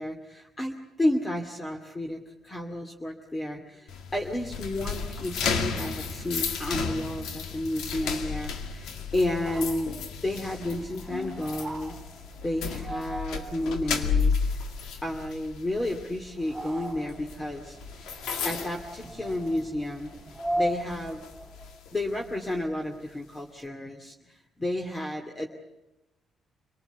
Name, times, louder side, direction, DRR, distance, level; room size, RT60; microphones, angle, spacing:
voice 1, 0.0-12.0 12.4-14.3 15.0-17.8 18.4-20.1 20.6-21.3 21.9-25.5, left 1 dB, 20° left, 2 dB, 2.4 m, -31 dB
sound 1, 3.9-19.8 20.1-20.4 20.9-22.6, left 5 dB, 85° left, 2.2 m, -33 dB
sound 2, 9.2-21.8, right 1 dB, 20° right, 2.8 m, -39 dB
26.5 x 19.5 x 8.2 m, 0.96 s
cardioid pair, 90°, 0 cm